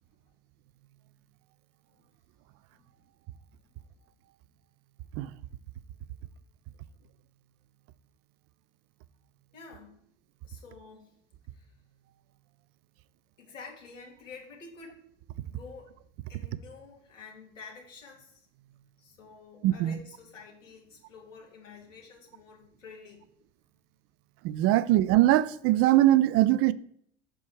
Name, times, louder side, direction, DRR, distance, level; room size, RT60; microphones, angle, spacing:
voice 1, 9.5-10.0 10.4-11.1 11.5-11.7 13.4-15.1 15.4-15.9 16.3-18.4 19.0-23.3, left 4 dB, 80° left, 2.3 m, -49 dB
voice 2, 19.6-20.0 24.4-26.7, right 14 dB, 40° right, 0.4 m, -22 dB
6.2 x 4.5 x 6.3 m
figure-of-eight pair, 75°, 37 cm